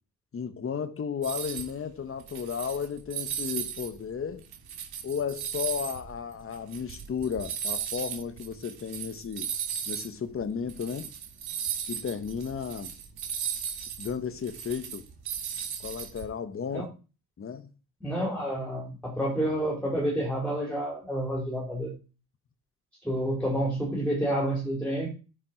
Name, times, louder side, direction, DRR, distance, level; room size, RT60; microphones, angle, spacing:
voice 1, 0.3-4.4 5.0-9.5 9.9-11.1 11.9-12.9 14.0-15.0 15.8-16.9 17.4-17.7, left 6 dB, 35° left, 1.3 m, -34 dB
sound 1, 1.2-1.7 2.2-3.9 4.3-10.1 10.4-10.5 10.7-16.2, right 8 dB, 85° right, 2.8 m, -36 dB
voice 2, 18.0-21.9 23.0-25.1, right 1 dB, 5° left, 4.5 m, -29 dB
9.8 x 7.6 x 4.6 m
cardioid pair, 140°, 37 cm